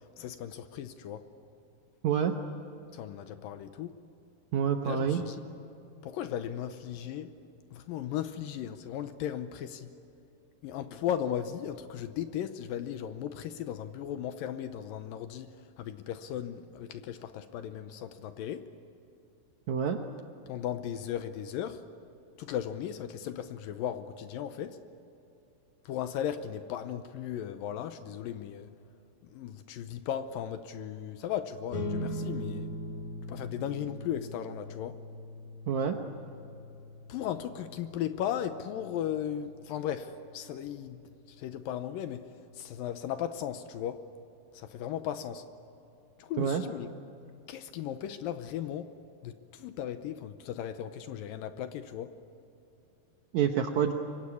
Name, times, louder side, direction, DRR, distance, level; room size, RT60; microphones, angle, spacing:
voice 1, 0.2-1.2 2.9-3.9 4.8-5.4 6.0-7.3 7.7-9.9 10.6-18.6 20.5-21.8 22.4-24.8 25.9-28.7 29.3-32.7 33.3-35.0 37.1-41.0 41.3-42.2 42.6-44.0 44.5-45.4 46.2-46.9 47.5-48.9 49.2-52.1, left 10 dB, 80° left, 10 dB, 2.1 m, -36 dB
voice 2, 4.5-5.2 19.7-20.0 35.7-35.9 46.4-46.6 53.3-53.9, right 8 dB, 80° right, 5 dB, 1.6 m, -27 dB
sound 1, 31.7-42.5, equal, 45° left, 3.2 m, -42 dB
24.5 x 23.5 x 9.7 m, 2.7 s
omnidirectional pair, 4.8 m